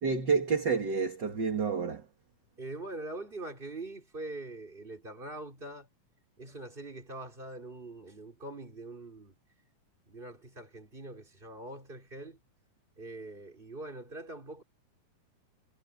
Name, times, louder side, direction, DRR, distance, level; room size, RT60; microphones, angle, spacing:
voice 1, 0.0-2.1, right 5 dB, 35° right, 2.3 m, -29 dB
voice 2, 2.6-5.9 6.4-9.4 10.1-12.4 13.0-14.6, right 2 dB, 15° right, 3.9 m, -43 dB
omnidirectional pair, 4.1 m